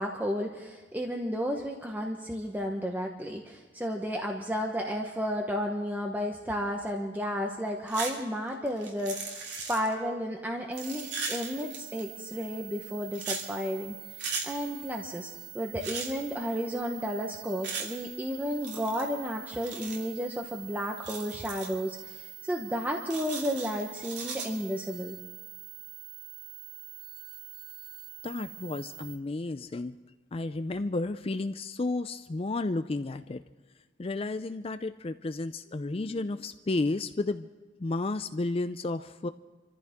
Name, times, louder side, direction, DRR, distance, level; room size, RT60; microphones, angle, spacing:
voice 1, 0.0-9.4 9.7-14.0 14.4-25.2, equal, 10° right, 1 dB, 1.1 m, -32 dB
sound 1, 7.9-8.2 8.5-9.9 10.7-12.0 13.1-13.4 14.2-14.5 15.8-16.1 17.6-17.9 18.6-19.0 19.6-20.1 21.0-21.7 23.1-24.5, right 4 dB, 60° right, 2.9 m, -37 dB
sound 2, 10.7-29.2, right 12 dB, 85° right, 1.4 m, -46 dB
voice 2, 28.2-30.0 30.3-33.4 34.0-37.5 37.8-39.3, left 2 dB, 30° left, 10 dB, 0.4 m, -32 dB
26.5 x 14.5 x 3.6 m, 1.3 s
head